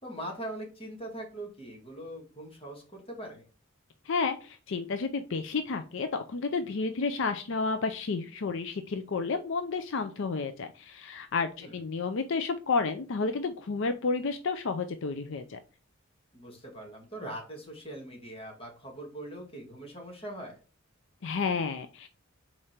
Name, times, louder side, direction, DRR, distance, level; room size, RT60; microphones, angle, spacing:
voice 1, 0.0-3.5 11.6-11.8 16.3-20.6, right 1 dB, 30° left, -1 dB, 2.0 m, -41 dB
voice 2, 4.1-15.6 21.2-22.1, left 4 dB, 65° left, 8 dB, 0.5 m, -31 dB
5.0 x 4.3 x 4.4 m, 0.35 s
head